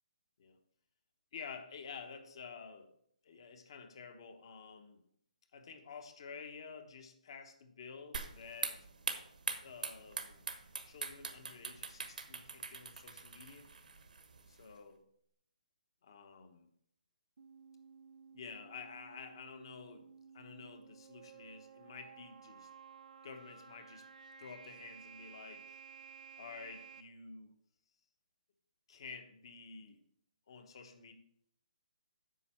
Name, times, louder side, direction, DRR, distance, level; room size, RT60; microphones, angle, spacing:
voice 1, 1.3-2.9 3.2-5.0 5.5-8.8 9.6-10.5 10.9-13.7 14.5-15.0 16.0-16.7 18.3-20.1 20.3-22.7 23.2-24.0 24.4-25.8 26.4-27.5 28.9-30.0 30.5-31.1, left 5 dB, 35° left, 7 dB, 1.1 m, -50 dB
sound 1, 8.1-14.7, right 4 dB, 80° right, 1.2 m, -43 dB
sound 2, 17.4-27.0, right 6 dB, 65° right, 0.7 m, -55 dB
9.1 x 6.2 x 4.4 m, 0.67 s
hypercardioid pair, 175°, 4 cm